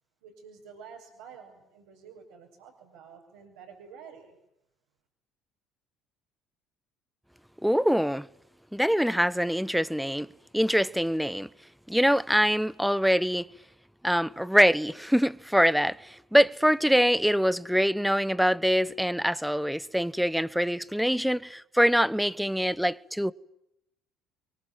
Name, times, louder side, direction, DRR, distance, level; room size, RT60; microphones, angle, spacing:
voice 1, 0.2-4.4, right 6 dB, 70° right, 6.3 m, -49 dB
voice 2, 7.6-8.3 8.7-10.3 10.5-11.5 11.9-13.5 14.0-23.3, equal, ahead, 1.0 m, -24 dB
24.0 x 23.5 x 9.1 m
figure-of-eight pair, 55°, 0 cm